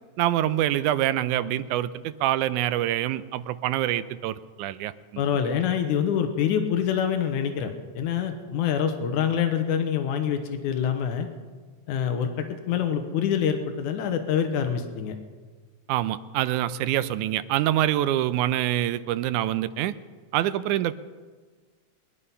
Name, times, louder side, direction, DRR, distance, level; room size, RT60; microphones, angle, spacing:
voice 1, 0.2-5.2 15.9-19.9 20.3-21.0, right 13 dB, 85° right, 14 dB, 2.1 m, -25 dB
voice 2, 5.2-11.3 11.9-15.2, left 8 dB, 90° left, 7 dB, 2.5 m, -26 dB
23.5 x 11.0 x 5.6 m, 1.5 s
omnidirectional pair, 3.4 m